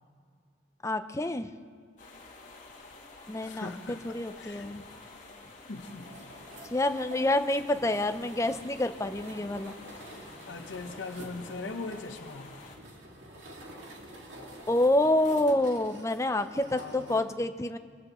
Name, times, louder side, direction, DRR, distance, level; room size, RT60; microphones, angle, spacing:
voice 1, 0.8-1.5 3.3-3.7 4.0-4.8 6.7-9.7 14.7-17.8, left 1 dB, 15° left, 9 dB, 0.5 m, -27 dB
sound 1, 2.0-12.8, left 3 dB, 40° left, 2.3 m, -50 dB
voice 2, 3.4-4.0 4.4-4.7 5.7-6.1 10.5-12.5 16.7-17.4, left 3 dB, 80° left, 6 dB, 0.9 m, -40 dB
sound 2, 5.8-17.2, right 1 dB, 85° right, 2.2 m, -48 dB
23.5 x 14.5 x 3.0 m, 2.1 s
head